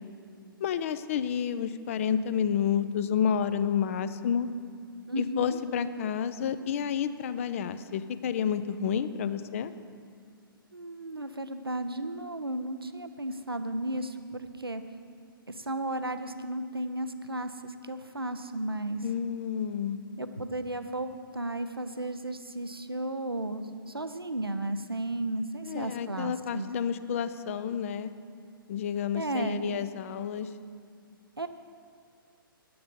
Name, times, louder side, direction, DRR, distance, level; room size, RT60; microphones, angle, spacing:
voice 1, 0.6-4.5 5.2-9.7 19.0-20.0 25.6-28.1 28.7-30.5, left 8 dB, 35° left, 12 dB, 0.4 m, -30 dB
voice 2, 5.1-5.6 10.7-14.8 15.5-19.0 20.2-26.7 29.1-29.7 31.4-31.5, right 1 dB, 85° right, 9 dB, 0.6 m, -34 dB
11.0 x 8.7 x 5.3 m, 2.2 s
figure-of-eight pair, 125°, 12 cm